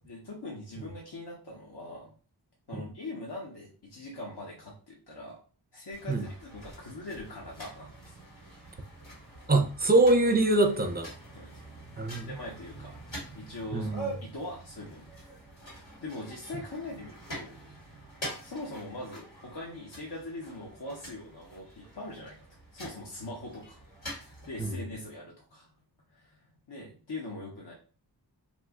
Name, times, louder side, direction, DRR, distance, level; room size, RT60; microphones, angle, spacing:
voice 1, 0.0-2.1 2.7-5.4 5.7-8.2 11.3-11.5 12.3-13.0 13.3-15.1 15.7-17.5 18.4-22.4 22.7-25.7 26.1-26.4 26.7-27.7, left 2 dB, 60° left, 0.9 m, -42 dB
sound 1, 5.9-24.7, right 1 dB, 85° left, 1.6 m, -45 dB
voice 2, 9.5-11.1 12.0-12.3 13.7-14.1 24.6-24.7, right 2 dB, 20° right, 0.5 m, -24 dB
2.5 x 2.4 x 3.6 m
wide cardioid pair, 45°, 45 cm